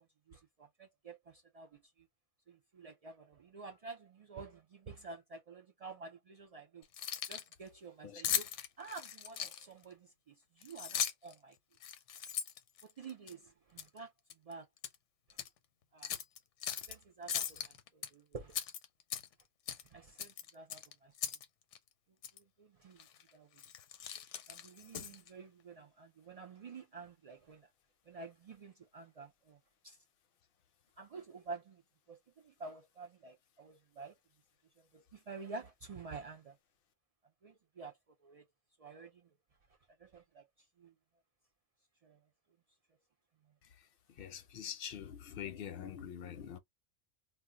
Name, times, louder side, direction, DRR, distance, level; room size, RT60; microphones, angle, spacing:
voice 1, 0.0-2.1 2.5-6.8 7.3-8.5 8.8-11.6 12.8-14.1 14.4-14.7 15.9-16.1 16.9-18.6 19.9-21.2 22.3-23.1 23.3-23.6 24.5-27.7 28.1-29.6 29.8-30.0 31.0-31.8 32.1-34.2 34.8-36.6 37.4-38.0 38.2-38.4 38.8-39.3 40.0-40.5 40.8-40.9 42.0-42.2, right 4 dB, 75° right, 0.3 m, -50 dB
Keys jangling, 6.8-7.5 8.2-9.8 10.6-11.3 11.8-13.3 13.8-14.0 14.3-15.0 15.3-15.5 16.0-16.9 17.3-18.1 18.5-19.4 19.7-19.9 20.2-21.5 21.7-21.8 22.2-22.4 23.0-23.2 23.6-25.3, left 9 dB, 85° left, 0.9 m, -39 dB
voice 2, 43.6-46.6, left 9 dB, 60° left, 0.7 m, -45 dB
2.3 x 2.2 x 3.6 m
omnidirectional pair, 1.2 m